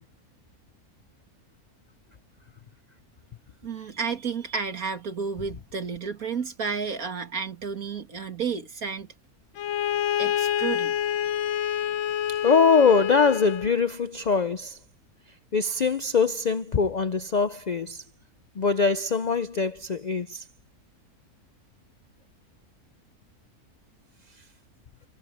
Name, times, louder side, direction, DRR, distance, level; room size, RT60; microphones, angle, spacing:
voice 1, 3.6-9.1 10.2-11.0, right 5 dB, 65° right, 2.5 m, -31 dB
Bowed string instrument, 9.6-13.8, left 10 dB, 60° left, 1.0 m, -27 dB
voice 2, 12.4-14.8 15.5-18.0 18.6-20.4, left 5 dB, 85° left, 0.3 m, -23 dB
omnidirectional pair, 1.6 m